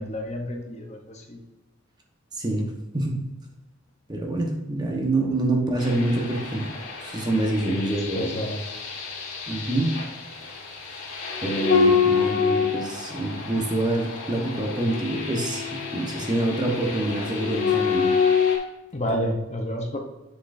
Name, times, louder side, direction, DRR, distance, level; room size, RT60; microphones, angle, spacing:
voice 1, 0.0-1.4 7.8-8.6 18.9-20.0, equal, 30° left, 2 dB, 0.8 m, -30 dB
voice 2, 2.3-2.7 2.9-3.3 4.1-6.7 7.0-8.3 9.5-10.0 11.4-15.6 15.9-18.2, right 2 dB, 20° right, 1 dB, 1.1 m, -26 dB
sound 1, 5.8-18.6, left 6 dB, 65° left, 2.3 m, -27 dB
7.6 x 7.0 x 2.6 m, 1.1 s
head